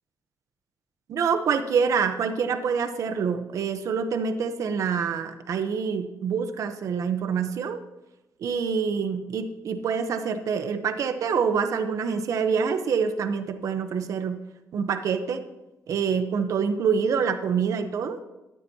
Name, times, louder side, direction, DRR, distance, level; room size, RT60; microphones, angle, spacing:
voice 1, 1.1-7.8 8.4-14.4 14.7-15.4 15.9-18.2, right 6 dB, 60° right, 9 dB, 0.9 m, -26 dB
13.5 x 11.5 x 2.9 m, 1.0 s
wide cardioid pair, 150°, 6 cm